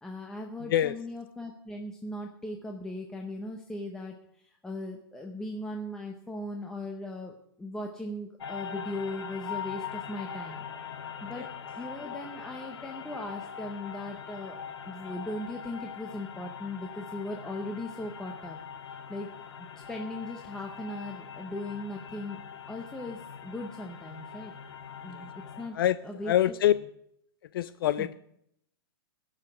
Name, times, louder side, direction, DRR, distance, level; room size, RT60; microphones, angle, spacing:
voice 1, 0.0-4.2 4.4-10.7 11.2-11.5 11.7-14.6 14.8-18.6 19.1-19.3 19.6-22.4 22.7-24.5 25.0-25.3 25.6-25.8 26.0-26.3 28.0-28.1, left 1 dB, 5° left, 2 dB, 0.7 m, -38 dB
voice 2, 0.6-1.0 11.4-11.5 25.0-25.3 25.7-26.7 27.5-28.1, left 12 dB, 60° left, 16 dB, 0.4 m, -26 dB
sound 1, 8.4-25.7, left 7 dB, 85° left, 1.0 m, -42 dB
15.5 x 5.8 x 7.8 m, 0.75 s
hypercardioid pair, 160°, 13 cm